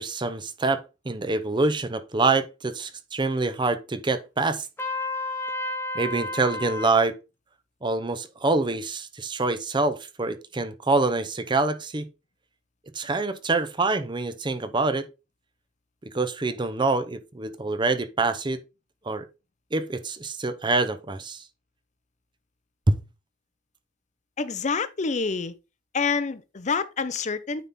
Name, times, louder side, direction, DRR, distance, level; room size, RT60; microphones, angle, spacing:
voice 1, 0.0-4.7 5.9-7.2 7.8-12.1 12.9-15.1 16.0-18.6 19.0-19.3 19.7-21.4 22.9-23.0, right 3 dB, 25° right, 0.7 m, -26 dB
Trumpet, 4.8-7.0, left 2 dB, 15° left, 1.0 m, -31 dB
voice 2, 24.4-25.5 25.9-27.7, left 5 dB, 40° left, 0.6 m, -27 dB
9.2 x 4.2 x 3.6 m
head